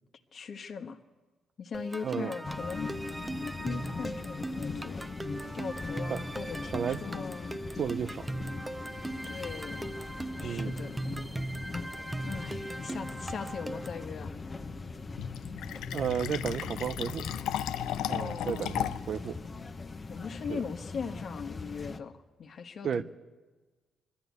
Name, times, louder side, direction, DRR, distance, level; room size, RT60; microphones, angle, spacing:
voice 1, 0.3-1.0 1.6-2.9 3.6-5.0 5.5-7.6 9.3-10.0 10.4-11.0 12.2-14.4 18.2-18.8 20.1-22.1 22.4-23.0, left 6 dB, 55° left, 6 dB, 1.4 m, -40 dB
sound 1, 1.7-14.1, right 2 dB, 15° right, 0.6 m, -39 dB
voice 2, 2.0-2.3 6.1-6.3 6.7-7.0 7.8-8.3 10.4-10.8 15.9-17.2 18.1-19.4 20.5-20.6 22.8-23.0, right 7 dB, 55° right, 12 dB, 0.8 m, -33 dB
sound 2, 2.4-22.0, left 3 dB, 30° left, 1.1 m, -41 dB
Fill (with liquid), 15.2-19.2, left 11 dB, 85° left, 0.5 m, -35 dB
21.5 x 13.0 x 9.5 m, 1.3 s
cardioid pair, 90°, 0 cm